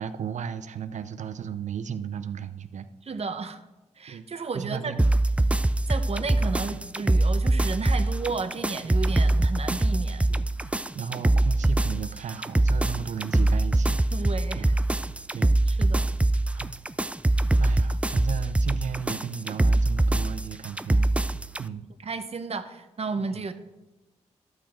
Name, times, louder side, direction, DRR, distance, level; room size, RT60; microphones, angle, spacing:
voice 1, 0.0-3.2 4.1-4.3 4.5-5.1 5.4-5.5 6.4-6.5 10.3-10.5 10.9-14.3 14.6-14.7 15.3-15.8 16.5-16.7 17.6-21.1 21.6-21.9, right 7 dB, 80° right, 12 dB, 0.5 m, -35 dB
voice 2, 3.1-3.6 4.0-4.9 5.9-10.3 14.1-14.7 15.7-16.1 22.0-23.5, right 4 dB, 60° right, 9 dB, 0.9 m, -33 dB
sound 1, 5.0-21.6, right 2 dB, 10° right, 0.3 m, -23 dB
12.5 x 6.3 x 4.4 m, 1.0 s
cardioid pair, 60°, 12 cm